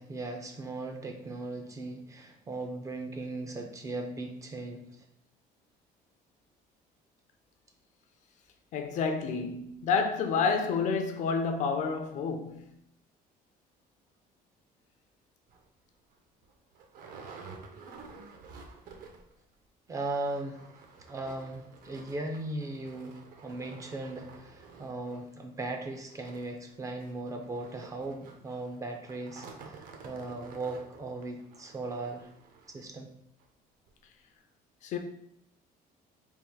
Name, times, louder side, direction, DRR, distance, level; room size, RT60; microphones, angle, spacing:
voice 1, 0.0-5.1 19.9-20.7 21.0-32.3 32.7-33.1, right 2 dB, 20° right, 0.4 m, -38 dB
voice 2, 8.7-12.7 34.8-35.0, left 5 dB, 50° left, 0.5 m, -29 dB
sound 1, 15.5-15.6 16.1-16.2 16.4-19.4 19.6-19.7 20.0-32.8 33.4-33.5 33.9-34.0, right 4 dB, 65° right, 0.7 m, -51 dB
3.5 x 2.4 x 4.5 m
cardioid pair, 165°, 16 cm